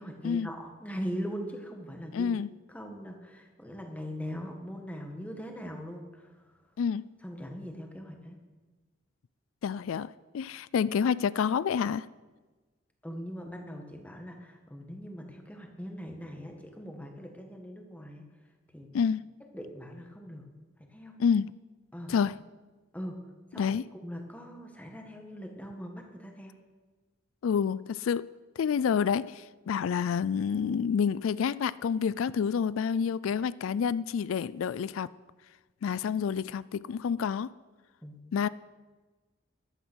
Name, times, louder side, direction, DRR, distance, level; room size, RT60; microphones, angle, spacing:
voice 1, 0.0-2.3 2.7-6.5 7.2-8.4 13.0-18.3 18.7-18.9 19.5-20.5 20.8-21.1 21.9-22.1 22.9-23.2 23.5-23.7 24.0-26.5 38.0-38.2, equal, 5° left, 1.7 m, -41 dB
voice 2, 2.1-2.5 6.8-7.1 9.6-12.1 18.9-19.2 21.2-21.6 22.1-22.4 23.6-23.8 27.4-35.1 35.8-37.5 38.3-38.5, left 7 dB, 85° left, 0.4 m, -28 dB
14.0 x 12.0 x 6.3 m
head